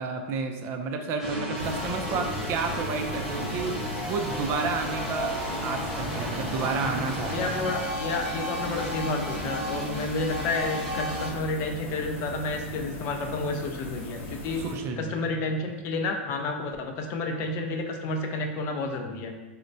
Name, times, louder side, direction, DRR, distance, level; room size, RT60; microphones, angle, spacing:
voice 1, 0.0-3.7 4.1-5.3 5.6-7.5 14.6-15.5, right 4 dB, 40° right, 4 dB, 0.3 m, -31 dB
sound 1, 1.2-11.3, equal, 5° right, 0.8 m, -33 dB
sound 2, 1.5-14.7, left 1 dB, 70° left, 1.0 m, -39 dB
voice 2, 7.3-14.6 15.0-19.3, left 3 dB, 40° left, 4 dB, 0.4 m, -30 dB
4.1 x 2.1 x 2.6 m, 1.2 s
hypercardioid pair, 125°, 7 cm